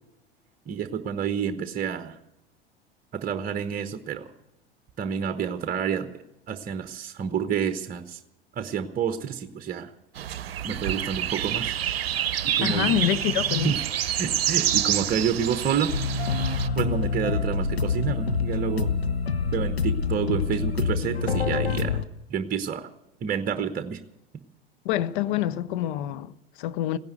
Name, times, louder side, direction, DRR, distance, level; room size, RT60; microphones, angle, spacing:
voice 1, 0.7-2.2 3.1-4.3 5.0-6.1 6.5-8.2 8.5-9.9 10.6-11.8 12.4-12.9 13.6-13.8 14.2-15.9 16.7-18.9 19.5-22.0 22.3-22.9 23.2-24.0, right 7 dB, 30° right, 1.0 m, -29 dB
sound 1, 10.2-16.7, right 10 dB, 70° right, 0.7 m, -27 dB
voice 2, 12.6-13.7 24.8-27.0, left 12 dB, 55° left, 0.8 m, -26 dB
sound 2, 15.9-22.0, left 5 dB, 90° left, 0.7 m, -26 dB
16.0 x 10.5 x 8.1 m
figure-of-eight pair, 80°, 30 cm